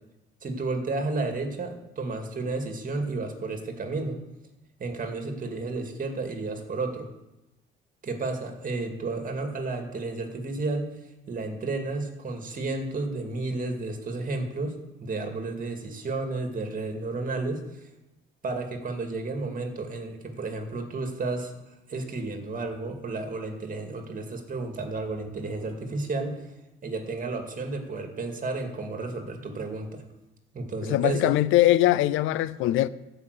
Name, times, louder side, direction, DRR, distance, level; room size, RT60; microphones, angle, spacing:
voice 1, 0.4-4.2 4.8-7.1 8.0-10.9 11.3-17.7 18.4-21.5 21.9-26.4 26.8-30.0 30.5-31.4, right 3 dB, 45° right, 2.3 m, -32 dB
voice 2, 30.9-32.9, left 15 dB, 90° left, 0.5 m, -21 dB
13.0 x 5.7 x 8.2 m
cardioid pair, 90°, 20 cm